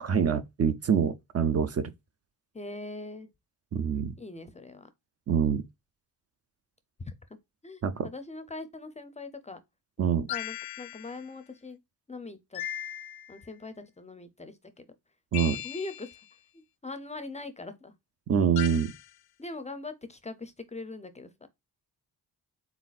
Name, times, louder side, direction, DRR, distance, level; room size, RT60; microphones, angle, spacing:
voice 1, 0.0-1.9 3.7-4.1 5.3-5.7 7.8-8.1 10.0-10.3 15.3-15.6 18.3-18.9, right 7 dB, 40° right, 0.4 m, -25 dB
voice 2, 2.5-3.3 4.2-4.9 7.0-7.4 7.6-9.6 10.3-11.8 12.1-12.6 13.3-14.8 15.6-16.2 16.5-17.9 19.4-21.5, left 3 dB, 20° left, 0.5 m, -41 dB
sound 1, 10.3-11.2 12.5-13.5 15.3-16.2 18.6-19.1, left 13 dB, 70° left, 0.5 m, -38 dB
4.0 x 4.0 x 2.3 m
cardioid pair, 120°, 39 cm